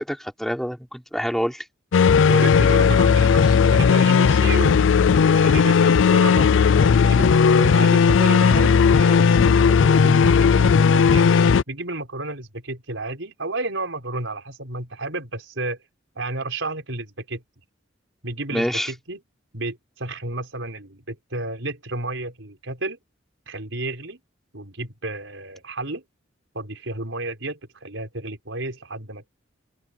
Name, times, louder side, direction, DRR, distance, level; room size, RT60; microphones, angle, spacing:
voice 1, 0.0-1.6 18.5-18.9, equal, ahead, 3.4 m, -26 dB
sound 1, 1.9-11.6, left 6 dB, 70° left, 0.4 m, -16 dB
voice 2, 2.3-11.3 11.7-15.8 16.2-17.4 18.2-19.2 19.5-23.0 23.5-24.2 24.5-26.0 26.5-29.3, right 2 dB, 75° right, 5.8 m, -32 dB
open air
head